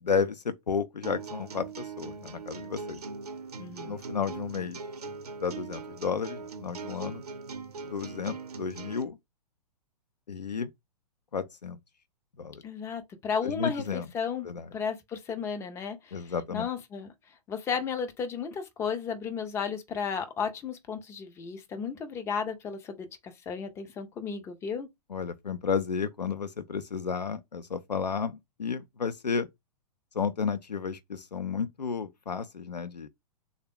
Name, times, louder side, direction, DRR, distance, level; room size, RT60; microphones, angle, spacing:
voice 1, 0.0-3.0 3.9-4.8 5.4-7.2 7.9-9.2 10.3-10.7 11.3-11.8 12.4-12.6 13.4-14.1 14.4-14.7 16.1-16.7 25.1-29.5 30.1-33.1, left 6 dB, 80° left, 0.5 m, -32 dB
sound 1, 1.0-9.0, right 4 dB, 65° right, 0.7 m, -41 dB
voice 2, 3.6-4.0 12.6-17.1 17.5-24.9, left 6 dB, 15° left, 0.4 m, -34 dB
3.5 x 2.1 x 3.6 m
figure-of-eight pair, 110°, 21 cm